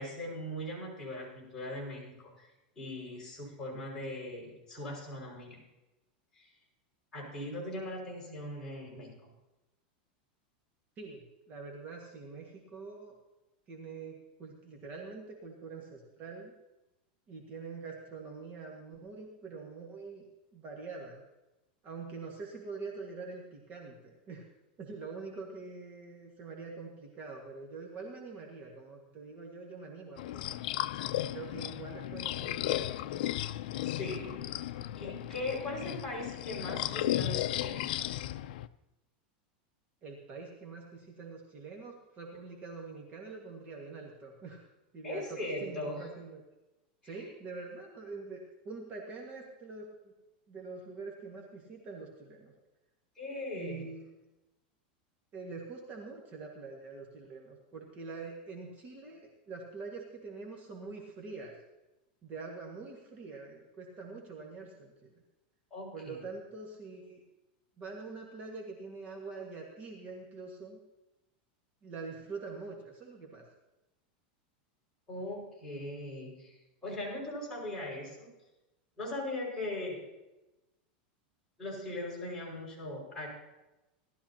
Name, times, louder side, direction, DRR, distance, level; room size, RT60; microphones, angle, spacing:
voice 1, 0.0-5.6 6.3-6.5 7.1-9.2 33.8-34.4 35.0-38.1 45.0-46.1 47.0-47.3 53.2-53.8 65.7-66.2 75.1-78.3 79.0-80.0 81.6-83.3, left 1 dB, 10° left, -7 dB, 5.6 m, -40 dB
voice 2, 11.0-13.1 13.7-16.5 17.3-20.2 20.5-21.2 21.8-24.4 24.8-30.5 31.3-33.2 40.0-44.6 44.9-46.4 47.0-50.1 50.5-52.5 53.5-54.1 55.3-61.5 62.2-65.2 65.9-67.2 67.8-70.8 71.8-73.5, right 4 dB, 30° right, 0 dB, 1.7 m, -45 dB
sound 1, 30.2-38.7, left 13 dB, 65° left, 0.4 m, -35 dB
18.5 x 12.5 x 2.9 m, 1.0 s
supercardioid pair, 150°, 5 cm